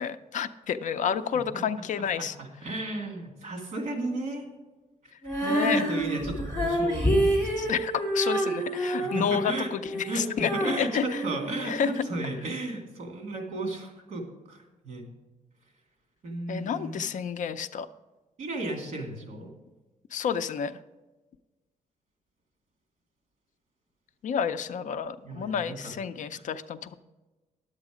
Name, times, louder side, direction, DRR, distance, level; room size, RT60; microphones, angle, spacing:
voice 1, 0.0-2.3 5.4-5.8 7.6-10.5 10.8-11.0 11.6-11.9 16.5-17.9 20.1-20.8 24.2-26.9, left 7 dB, 60° left, 12 dB, 0.4 m, -30 dB
voice 2, 2.0-4.4 5.5-7.7 9.0-9.7 10.1-15.1 16.2-17.0 18.4-19.5 25.2-25.9 26.3-26.4, right 2 dB, 55° right, 2 dB, 2.3 m, -34 dB
Female singing, 5.2-12.3, right 1 dB, 15° left, 3.0 m, -28 dB
10.5 x 8.1 x 4.9 m, 1.2 s
wide cardioid pair, 175°, 14 cm